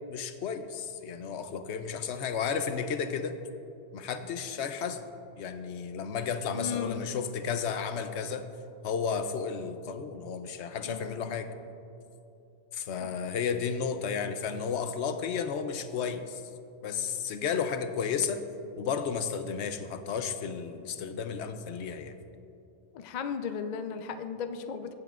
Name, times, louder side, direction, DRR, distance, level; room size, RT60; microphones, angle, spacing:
voice 1, 0.1-3.4 3.9-5.1 5.4-8.5 8.8-11.5 12.7-16.4 16.8-18.4 18.8-22.1, left 6 dB, 75° left, 9 dB, 0.9 m, -33 dB
voice 2, 6.5-7.1 10.8-11.4 13.0-13.1 22.9-24.9, left 6 dB, 55° left, 8 dB, 0.5 m, -36 dB
15.5 x 7.9 x 2.4 m, 2.8 s
omnidirectional pair, 1.2 m